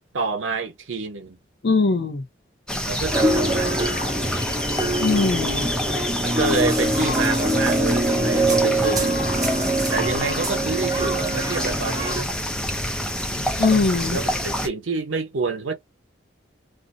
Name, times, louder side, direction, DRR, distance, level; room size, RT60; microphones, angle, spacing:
voice 1, 0.0-1.4 2.8-3.8 6.2-9.2 9.9-12.3 14.1-15.7, right 4 dB, 85° right, 0.7 m, -27 dB
voice 2, 1.6-2.2 5.0-5.7 13.4-14.2, left 3 dB, 60° left, 0.6 m, -21 dB
sound 1, 2.7-14.7, equal, 5° left, 0.4 m, -27 dB
sound 2, 3.1-12.2, right 1 dB, 20° right, 0.7 m, -24 dB
2.5 x 2.0 x 2.6 m
head